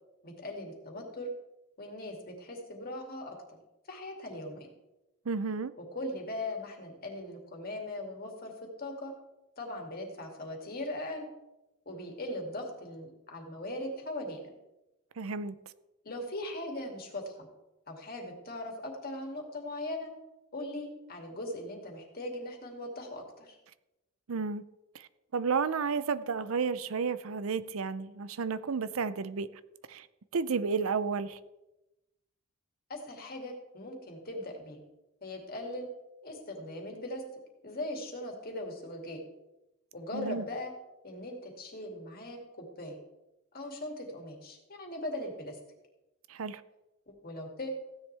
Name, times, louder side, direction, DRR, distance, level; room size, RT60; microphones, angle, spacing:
voice 1, 0.2-1.3 1.8-3.6 3.9-4.7 5.8-8.5 8.8-9.1 9.6-11.3 11.9-14.5 16.0-17.5 17.9-20.1 20.5-23.6 32.9-34.8 35.2-35.9 36.2-37.2 37.6-39.2 39.9-40.7 41.0-43.0 43.5-45.6 47.1-47.7, left 1 dB, 45° left, 2.5 m, -39 dB
voice 2, 5.3-5.7 15.2-15.5 24.3-24.6 24.9-25.1 25.3-29.5 29.9-30.1 30.3-31.4 40.1-40.4 46.3-46.6, right 5 dB, 80° right, 0.6 m, -32 dB
15.5 x 10.5 x 3.4 m
head